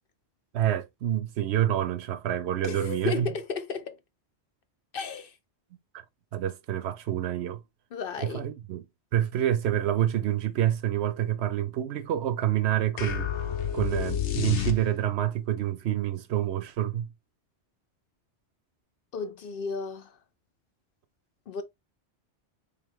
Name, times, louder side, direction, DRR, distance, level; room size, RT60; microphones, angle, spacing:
voice 1, 0.5-3.3 6.3-7.6 8.3-8.8 9.1-13.3 13.7-17.1, right 11 dB, 70° right, 0.8 m, -27 dB
voice 2, 2.6-4.0 4.9-5.4 7.9-8.5 19.1-20.2 21.5-21.6, left 5 dB, 60° left, 0.7 m, -33 dB
sound 1, 13.0-15.2, left 10 dB, 85° left, 1.0 m, -30 dB
3.6 x 3.1 x 3.6 m
omnidirectional pair, 1.2 m